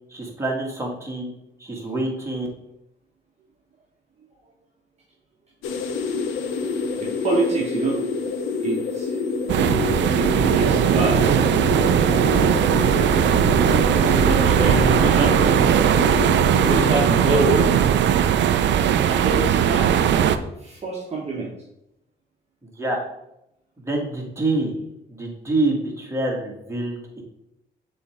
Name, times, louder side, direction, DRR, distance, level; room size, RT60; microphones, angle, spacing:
voice 1, 0.1-1.3 1.6-2.5 22.8-23.0 23.8-24.7 25.1-27.0, right 2 dB, 15° right, -1 dB, 1.8 m, -26 dB
sound 1, 5.6-17.1, left 4 dB, 90° left, 0.7 m, -27 dB
voice 2, 7.0-8.3 8.6-9.2 10.1-11.4 13.8-15.4 16.6-17.8 18.9-20.3 20.6-21.5, right 2 dB, 35° right, -2 dB, 1.3 m, -26 dB
sound 2, 9.5-20.4, right 9 dB, 65° right, 0.5 m, -19 dB
6.9 x 3.3 x 4.9 m, 0.84 s
cardioid pair, 90°, 20 cm